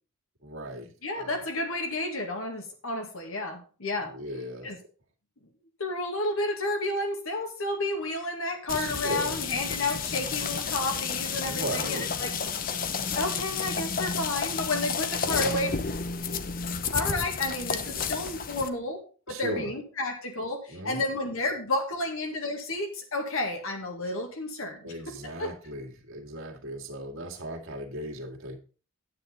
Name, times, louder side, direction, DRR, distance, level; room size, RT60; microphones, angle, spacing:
voice 1, 0.4-1.4 4.0-4.8 8.7-9.4 11.5-12.1 15.2-15.5 19.3-19.7 20.7-21.0 24.8-28.6, right 1 dB, 70° right, 2 dB, 2.1 m, -37 dB
voice 2, 1.0-4.1 4.6-4.8 5.8-12.7 13.1-15.7 16.9-19.0 19.3-24.8 25.4-25.5, left 2 dB, 75° left, 3 dB, 2.0 m, -31 dB
sound 1, 8.7-18.7, left 6 dB, 40° left, 0.7 m, -31 dB
9.7 x 8.6 x 3.9 m, 0.36 s
head